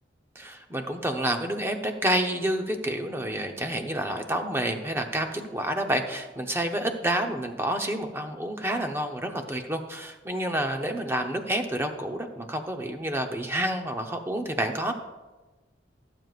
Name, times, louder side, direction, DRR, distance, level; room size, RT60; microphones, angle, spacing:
voice 1, 0.4-14.9, right 1 dB, 15° right, 4 dB, 0.8 m, -29 dB
17.5 x 7.8 x 2.5 m, 1.2 s
head